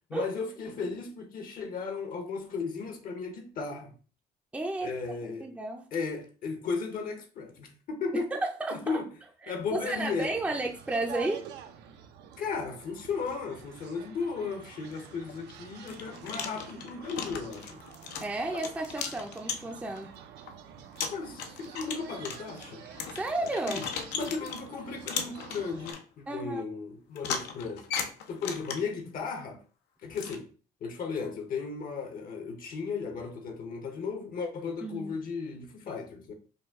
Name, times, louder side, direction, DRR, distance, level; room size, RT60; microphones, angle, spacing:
voice 1, 0.1-3.9 4.8-5.5 5.9-8.3 8.7-9.1 9.5-10.3 12.4-17.8 21.0-22.9 23.6-23.9 24.1-27.9 28.3-29.6 30.0-30.5 30.8-36.3, left 5 dB, 60° left, 0.9 m, -35 dB
voice 2, 4.5-5.0 5.4-5.9 8.1-9.0 9.4-11.5 18.2-20.2 23.2-23.9 26.3-26.6 34.8-35.2, right 2 dB, 10° right, 0.5 m, -33 dB
sound 1, 9.6-25.9, right 8 dB, 80° right, 0.6 m, -48 dB
sound 2, 15.2-15.3 15.9-20.0 20.5-20.6 21.0-24.7 25.1-26.0 27.2-29.0 30.2-30.4, left 6 dB, 85° left, 0.7 m, -37 dB
5.1 x 2.2 x 3.5 m
cardioid pair, 110°, 17 cm